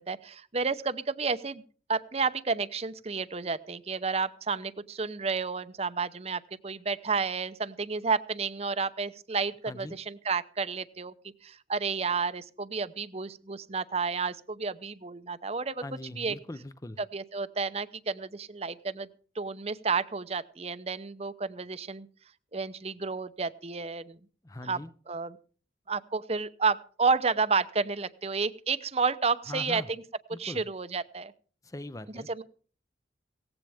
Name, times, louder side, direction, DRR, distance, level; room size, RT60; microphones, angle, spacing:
voice 1, 0.0-1.6 1.9-11.1 11.4-15.8 16.1-16.4 17.0-19.1 19.4-22.1 22.5-24.2 24.6-24.8 25.1-25.4 25.9-30.0 30.4-31.3 32.1-32.4, right 4 dB, 35° right, 0.7 m, -31 dB
voice 2, 9.7-10.0 15.8-17.0 24.4-24.9 29.5-29.9 30.3-30.6 31.6-32.3, left 1 dB, 20° left, 0.7 m, -41 dB
18.0 x 15.0 x 3.5 m
head